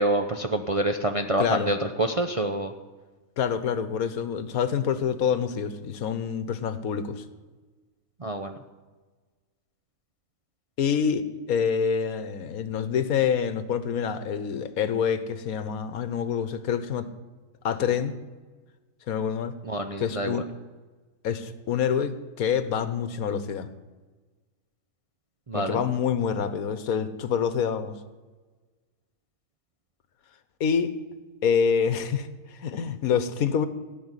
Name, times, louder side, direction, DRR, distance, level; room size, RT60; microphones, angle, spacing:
voice 1, 0.0-2.7 8.2-8.6 19.6-20.4 25.5-25.9, right 1 dB, 40° right, 5 dB, 0.5 m, -27 dB
voice 2, 1.4-1.7 3.4-7.2 10.8-17.1 17.6-18.2 19.1-19.5 20.0-20.4 21.2-23.7 25.5-27.9 30.6-30.9 31.4-33.7, left 7 dB, 80° left, 12 dB, 1.4 m, -26 dB
16.5 x 6.2 x 9.7 m, 1.3 s
omnidirectional pair, 1.5 m